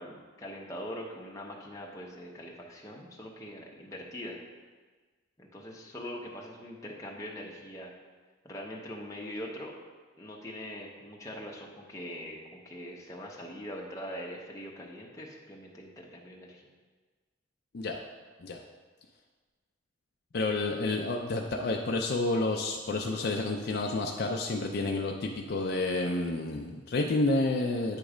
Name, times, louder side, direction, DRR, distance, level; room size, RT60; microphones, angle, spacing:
voice 1, 0.0-4.4 5.4-7.9 8.4-9.7 10.2-16.6, equal, 15° left, -2 dB, 0.8 m, -42 dB
voice 2, 20.3-28.0, left 2 dB, 50° left, 2 dB, 0.4 m, -30 dB
8.9 x 3.1 x 4.9 m, 1.4 s
head